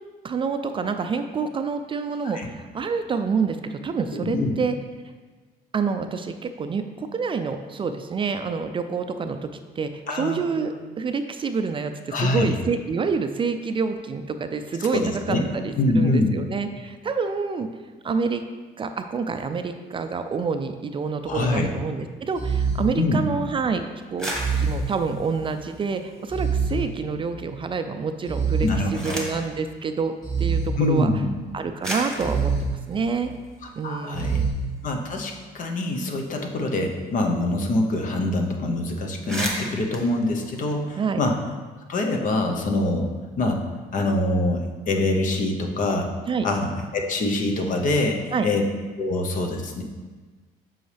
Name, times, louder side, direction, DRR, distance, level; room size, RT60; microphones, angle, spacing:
voice 1, 0.2-4.8 5.7-17.7 18.0-18.4 18.8-30.1 30.4-31.1 31.5-33.3 33.8-34.5 41.0-41.2 46.3-46.5 48.3-48.5, right 5 dB, 30° right, 8 dB, 0.4 m, -27 dB
voice 2, 4.1-4.5 10.1-10.7 12.1-12.6 14.8-15.4 15.8-16.3 21.3-21.7 23.0-23.3 28.6-29.2 30.8-31.3 33.8-34.5 34.8-41.4 41.9-43.1 43.4-43.6 43.9-46.1 46.4-48.6 49.0-49.8, left 2 dB, 50° left, 3 dB, 1.0 m, -24 dB
sound 1, 21.3-21.7 22.4-23.7 24.3-25.6 26.3-27.6 28.3-29.6 30.2-31.5 32.2-33.5 34.2-34.5, right 5 dB, 25° left, 1.8 m, -27 dB
sound 2, 24.0-26.6 27.0-27.7 28.4-29.5 30.6-30.7 31.4-31.5 31.8-34.1 34.5-34.6 34.9-37.5 37.7-37.9 38.1-38.4 38.8-38.9 39.1-41.3, equal, 5° left, 1.5 m, -36 dB
7.8 x 5.6 x 3.4 m, 1.4 s
cardioid pair, 110°, 17 cm